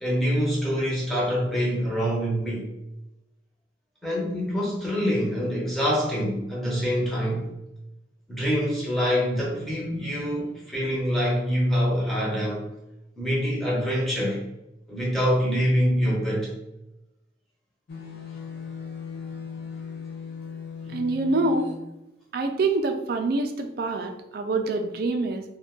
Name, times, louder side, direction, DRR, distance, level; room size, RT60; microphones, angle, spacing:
voice 1, 0.0-2.7 4.0-7.5 8.3-12.6 13.2-14.4 14.9-16.5 20.8-21.0, equal, ahead, -5 dB, 0.8 m, -25 dB
sound 1, 17.9-21.8, left 6 dB, 60° left, 0.4 m, -38 dB
voice 2, 20.9-21.7 22.3-25.4, right 2 dB, 55° right, 5 dB, 0.3 m, -26 dB
2.5 x 2.2 x 3.6 m, 0.91 s
head